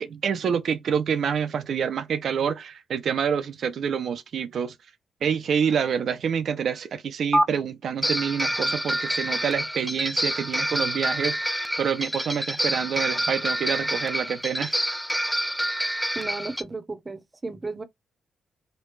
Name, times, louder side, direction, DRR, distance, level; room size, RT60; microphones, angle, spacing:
voice 1, 0.0-4.7 5.2-14.7, right 7 dB, 65° right, 0.5 m, -27 dB
sound 1, 7.3-7.5 8.0-16.6, equal, 5° right, 0.5 m, -27 dB
voice 2, 16.1-17.8, right 3 dB, 30° right, 0.8 m, -34 dB
3.2 x 2.3 x 3.2 m
cardioid pair, 75°, 0 cm